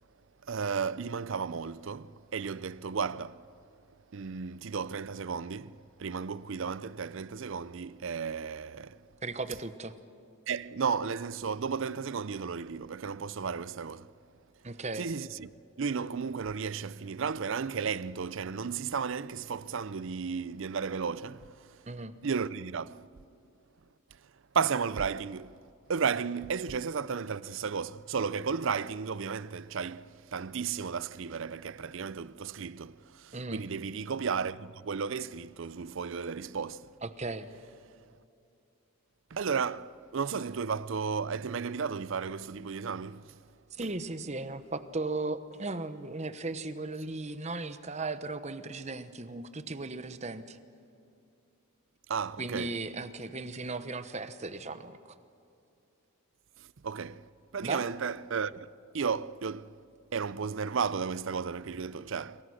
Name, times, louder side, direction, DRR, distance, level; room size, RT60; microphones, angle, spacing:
voice 1, 0.5-3.5 4.1-9.0 10.5-14.1 15.0-15.5 15.8-21.7 22.2-23.1 24.5-25.6 25.9-36.9 39.3-43.4 52.1-52.8 56.6-58.7 58.9-59.8 60.1-62.4, right 6 dB, 60° right, 0.5 m, -34 dB
voice 2, 9.2-9.9 14.6-15.1 21.9-22.1 33.3-33.6 37.0-37.5 43.7-50.6 52.4-55.2 57.6-57.9, right 3 dB, 30° right, 1.0 m, -36 dB
27.5 x 24.0 x 6.4 m
head